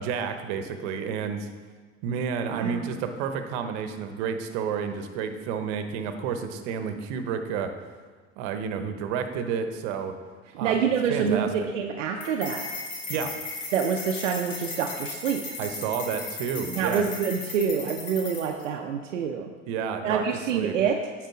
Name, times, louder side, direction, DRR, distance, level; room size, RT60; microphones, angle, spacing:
voice 1, 0.0-1.5 2.0-7.7 8.4-10.1 10.6-10.8 11.1-11.5 13.1-13.4 15.6-17.1 19.7-20.2 20.5-20.8, right 6 dB, 70° right, 8 dB, 1.0 m, -30 dB
voice 2, 2.5-3.0 10.6-12.6 13.7-15.4 16.8-19.5 20.0-21.0, right 7 dB, 90° right, 2 dB, 0.6 m, -27 dB
sound 1, 12.2-18.6, left 3 dB, 85° left, 1.8 m, -36 dB
9.1 x 4.8 x 4.8 m, 1.5 s
hypercardioid pair, 70°, 36 cm